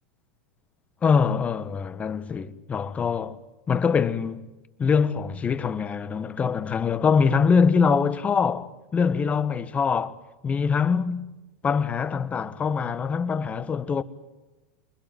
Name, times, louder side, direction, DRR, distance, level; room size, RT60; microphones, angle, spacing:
voice 1, 1.0-3.4 3.7-4.5 4.8-10.1 10.4-11.3 11.6-14.0, left 6 dB, 20° left, 1.4 m, -23 dB
28.0 x 20.5 x 9.3 m
hypercardioid pair, 110°, 6 cm